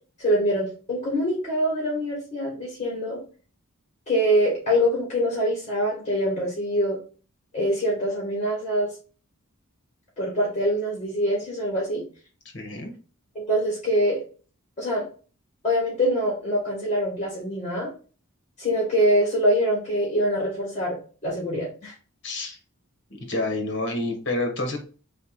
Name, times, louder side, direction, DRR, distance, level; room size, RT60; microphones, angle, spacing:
voice 1, 0.2-3.2 4.1-7.0 7.5-8.9 10.2-12.0 13.3-14.2 14.8-15.0 15.6-17.9 18.6-21.0 21.2-21.9, equal, 30° left, -5 dB, 2.0 m, -24 dB
voice 2, 12.5-12.9 22.2-22.6 23.3-24.8, left 2 dB, 55° left, 4 dB, 1.3 m, -28 dB
3.5 x 3.4 x 4.3 m, 0.37 s
head